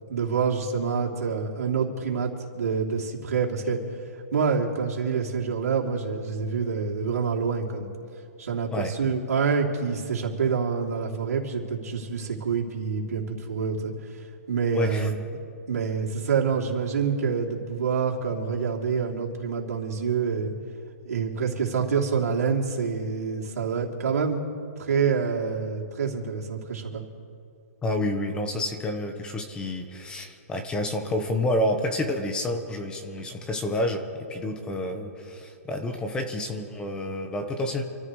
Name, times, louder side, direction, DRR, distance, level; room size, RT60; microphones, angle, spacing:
voice 1, 0.1-3.8 4.3-7.9 8.4-13.9 14.5-15.2 15.7-20.5 21.0-24.4 24.8-27.0, right 5 dB, 75° right, -1 dB, 3.2 m, -27 dB
voice 2, 14.7-15.1 27.8-34.0 34.3-37.8, left 1 dB, 10° left, 5 dB, 1.1 m, -29 dB
27.5 x 14.5 x 3.2 m, 2.6 s
hypercardioid pair, 155°, 9 cm